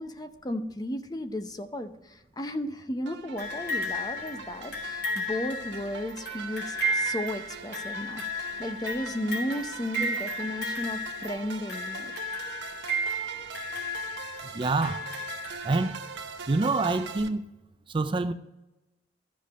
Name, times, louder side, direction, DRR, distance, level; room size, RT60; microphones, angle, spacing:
voice 1, 0.0-8.2 8.6-12.1, left 1 dB, 20° left, 0.7 m, -34 dB
sound 1, 3.1-17.3, right 5 dB, 85° right, 0.8 m, -42 dB
sound 2, 3.4-16.2 17.2-17.3, equal, 60° left, 3.3 m, -34 dB
voice 2, 14.5-15.1 15.6-16.0 16.5-17.4 17.9-18.3, right 3 dB, 30° right, 0.4 m, -26 dB
13.0 x 5.2 x 5.5 m
head